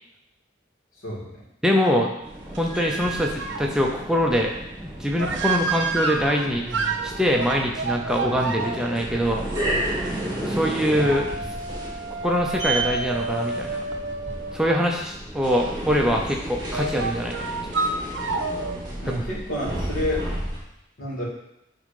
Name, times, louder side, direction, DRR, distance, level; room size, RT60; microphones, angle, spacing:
voice 1, 1.0-1.4 19.0-20.2 21.0-21.2, left 1 dB, 90° left, -5 dB, 2.6 m, -29 dB
voice 2, 1.6-2.1 2.5-4.5 4.8-6.7 7.0-9.4 10.4-11.3 12.2-13.8 14.5-17.5 19.1-19.2, equal, 5° right, 0 dB, 0.6 m, -23 dB
sound 1, 2.2-20.6, right 1 dB, 20° right, 1.8 m, -33 dB
sound 2, 2.5-3.7 5.2-14.7 16.7-18.8, right 4 dB, 70° right, 0.8 m, -30 dB
8.5 x 3.8 x 5.2 m, 0.84 s
head